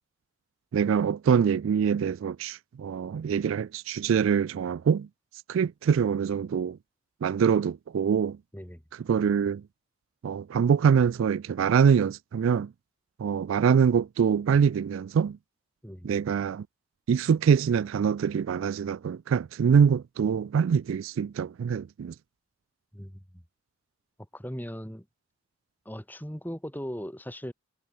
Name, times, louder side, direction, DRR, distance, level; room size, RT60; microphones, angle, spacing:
voice 1, 0.7-5.1 5.5-6.8 7.2-8.4 9.1-9.6 10.2-12.7 13.2-15.4 16.0-16.7 17.1-22.1, right 7 dB, 75° right, 0.3 m, -24 dB
voice 2, 15.8-16.2 22.9-23.4 24.3-25.1 25.9-27.5, equal, 10° left, 4.0 m, -38 dB
head